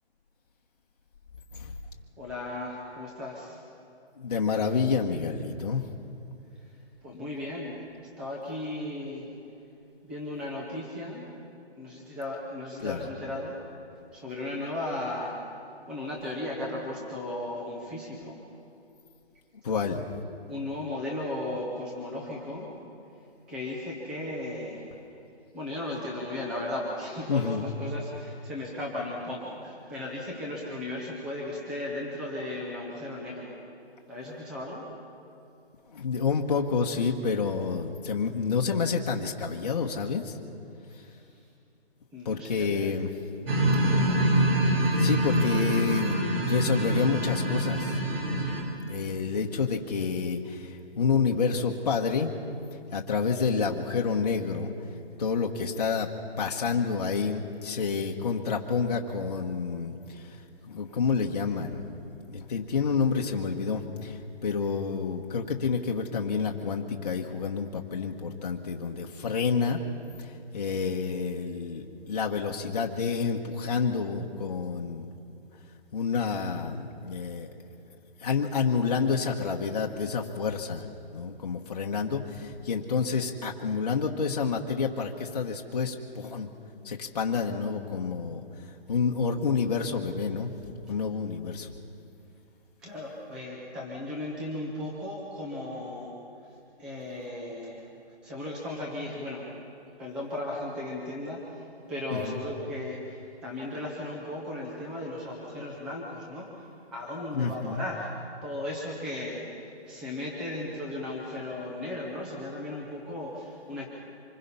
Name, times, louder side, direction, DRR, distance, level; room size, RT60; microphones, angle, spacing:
voice 1, 2.2-3.6 7.0-7.8 8.2-9.3 10.0-11.2 11.8-13.6 14.1-15.3 15.9-18.4 20.5-22.7 23.5-24.9 25.5-33.6 34.1-34.8 42.1-42.9 43.4-43.5 43.8-44.1 92.8-96.1 96.8-97.8 98.2-99.5 100.0-108.1 108.4-113.9, left 1 dB, ahead, -3 dB, 0.8 m, -36 dB
voice 2, 4.2-5.8 12.8-13.1 19.6-20.1 27.3-27.7 35.9-40.4 42.2-43.1 44.8-48.0 48.9-52.3 52.9-54.7 55.2-56.1 56.4-60.4 60.7-61.9 62.3-69.8 70.2-75.1 75.9-77.5 78.2-80.8 81.1-86.5 86.8-88.4 88.9-90.5 90.9-91.7 102.1-102.4 107.3-107.8, left 5 dB, 35° left, 0 dB, 1.2 m, -29 dB
sound 1, 43.5-48.6, right 1 dB, 55° right, 4.0 m, -25 dB
25.5 x 21.0 x 5.5 m, 2.7 s
hypercardioid pair, 170°, 33 cm